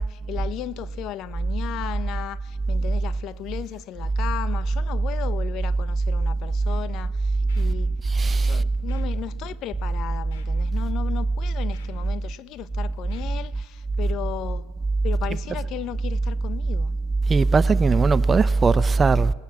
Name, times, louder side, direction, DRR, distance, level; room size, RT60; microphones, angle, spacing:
voice 1, 0.0-7.9 8.4-14.7 15.0-16.9, left 13 dB, 50° left, 1.2 m, -35 dB
Scratching (performance technique), 6.9-7.0 7.3-7.8 8.1-8.4 8.7-9.0 9.5-9.8 10.1-10.7 11.0-11.2 11.5-12.6 12.9-13.5 13.8-13.9, left 10 dB, 80° left, 3.6 m, -52 dB
voice 2, 8.1-8.6 17.3-19.3, right 4 dB, 25° right, 0.8 m, -18 dB
27.5 x 19.5 x 7.4 m
hypercardioid pair, 90°, 0 cm